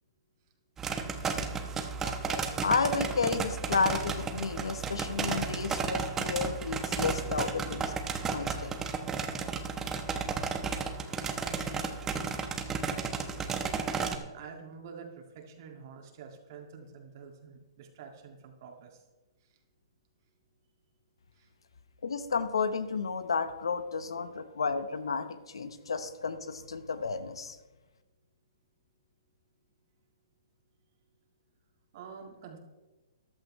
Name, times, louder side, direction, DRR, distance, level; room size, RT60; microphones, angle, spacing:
sound 1, 0.8-14.2, right 5 dB, 15° right, 1.0 m, -33 dB
voice 1, 2.0-7.9 8.3-8.8 22.0-27.6, left 5 dB, 85° left, 11 dB, 1.0 m, -32 dB
voice 2, 14.0-19.0 19.4-19.6 21.3-21.5 31.9-32.6, right 6 dB, 50° right, 2 dB, 2.1 m, -48 dB
14.0 x 11.5 x 3.2 m, 1.2 s
hypercardioid pair, 140°, 3 cm